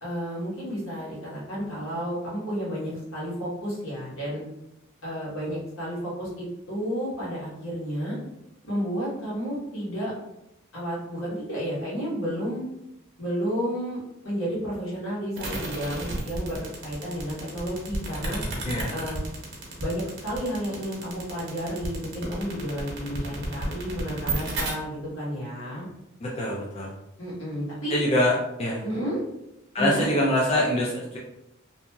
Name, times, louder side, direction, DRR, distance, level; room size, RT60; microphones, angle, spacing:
voice 1, 0.0-4.4 5.0-8.2 8.6-10.1 10.7-12.6 13.2-14.0 14.2-18.4 18.9-19.2 19.8-25.9 27.2-27.9 28.8-29.2 29.8-30.1, equal, 70° left, -6 dB, 1.2 m, -31 dB
sound 1, 15.4-24.7, right 3 dB, 60° right, 0.7 m, -33 dB
voice 2, 26.2-26.9 27.9-28.8 29.7-31.2, left 1 dB, 30° left, -4 dB, 0.4 m, -24 dB
2.8 x 2.6 x 2.2 m, 0.86 s
head